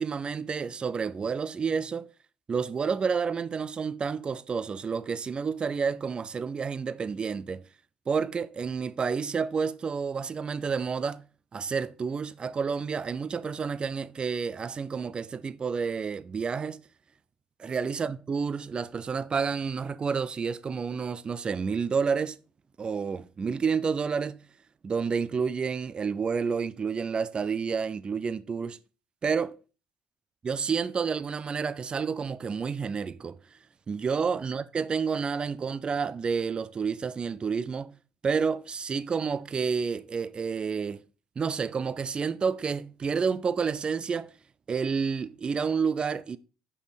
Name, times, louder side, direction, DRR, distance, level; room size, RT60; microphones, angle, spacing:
voice 1, 0.0-2.1 2.5-7.6 8.1-11.2 11.5-16.8 17.6-22.4 22.8-24.4 24.8-28.8 29.2-29.6 30.4-33.4 33.9-37.9 38.2-41.0 41.4-44.3 44.7-46.4, right 5 dB, 35° right, 0.5 m, -30 dB
6.5 x 5.3 x 5.0 m
supercardioid pair, 85°, 3 cm